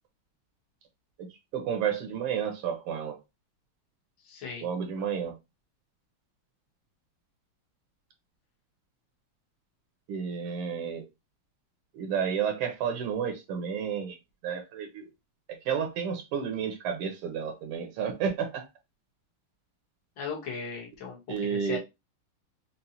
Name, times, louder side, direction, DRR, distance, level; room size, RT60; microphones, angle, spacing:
voice 1, 1.5-3.2 4.6-5.4 10.1-11.1 11.9-14.2 14.4-15.1 15.5-18.7 21.3-21.8, right 7 dB, 85° right, 1.8 m, -31 dB
voice 2, 4.2-4.6 20.2-21.8, left 5 dB, 60° left, 1.8 m, -37 dB
5.3 x 2.1 x 2.8 m
omnidirectional pair, 2.4 m